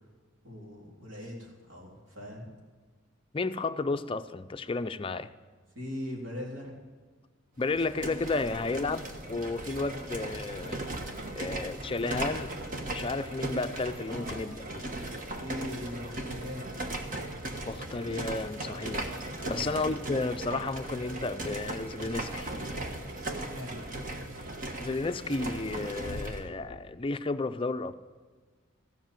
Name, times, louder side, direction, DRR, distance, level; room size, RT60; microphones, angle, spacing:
voice 1, 0.4-2.5 5.8-6.7 14.1-14.5 15.4-16.7 19.3-19.7 23.3-23.8, left 1 dB, 80° right, -2 dB, 3.5 m, -40 dB
voice 2, 3.3-5.3 7.6-9.0 9.3-10.8 11.3-12.5 12.9-14.8 17.7-19.0 19.5-22.6 24.8-27.9, left 3 dB, 25° left, 10 dB, 0.5 m, -32 dB
sound 1, 7.6-26.5, right 1 dB, 40° right, 1.4 m, -37 dB
15.0 x 7.7 x 9.1 m, 1.4 s
head